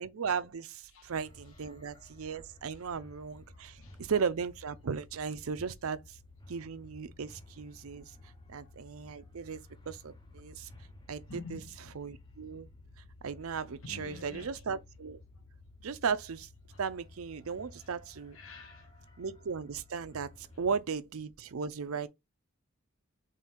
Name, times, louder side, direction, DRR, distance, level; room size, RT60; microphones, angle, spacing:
voice 1, 0.0-6.2 6.5-8.1 8.5-9.6 9.9-10.7 11.1-11.6 11.9-12.7 13.2-15.2 15.8-16.5 16.8-18.4 19.2-22.1, right 6 dB, 70° right, 0.5 m, -36 dB
sound 1, 1.1-20.8, left 2 dB, 20° left, 0.8 m, -54 dB
voice 2, 11.3-12.0 13.6-14.6 17.5-18.0 18.3-19.1 20.6-20.7, left 4 dB, 65° left, 0.9 m, -49 dB
3.7 x 3.4 x 4.2 m
head